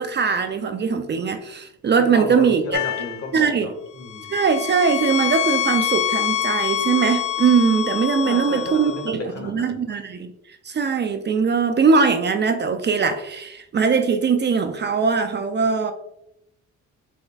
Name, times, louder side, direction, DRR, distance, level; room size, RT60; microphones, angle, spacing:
voice 1, 0.0-2.6 3.3-3.7 4.3-10.3 10.6-15.9, right 5 dB, 35° right, 8 dB, 0.5 m, -21 dB
voice 2, 2.0-4.3 8.2-9.8, left 1 dB, 55° left, 2 dB, 1.4 m, -33 dB
sound 1, 2.7-3.3 4.0-9.1, left 11 dB, 70° left, 0.6 m, -26 dB
6.2 x 3.0 x 2.3 m, 0.80 s
cardioid pair, 90°, 30 cm